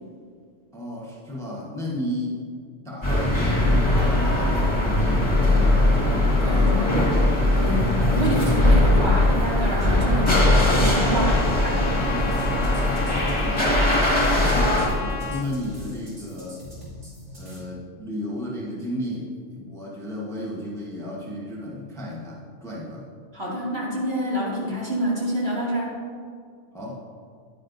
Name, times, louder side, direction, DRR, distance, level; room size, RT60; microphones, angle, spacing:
voice 1, 0.7-2.4 2.8-3.4 3.9-6.0 6.5-7.0 12.8-14.0 14.4-16.6 17.3-23.1 26.7-27.0, left 1 dB, 5° left, -4 dB, 1.1 m, -33 dB
sound 1, 3.0-14.9, left 1 dB, 25° left, 1.8 m, -20 dB
voice 2, 6.4-7.0 7.5-12.1 23.3-25.9, equal, 55° right, -7 dB, 2.6 m, -27 dB
Trumpet, 11.3-15.5, left 7 dB, 65° left, 0.9 m, -34 dB
sound 2, 12.2-17.6, left 1 dB, 70° right, 2.9 m, -42 dB
10.0 x 9.4 x 2.6 m, 2.1 s
omnidirectional pair, 1.3 m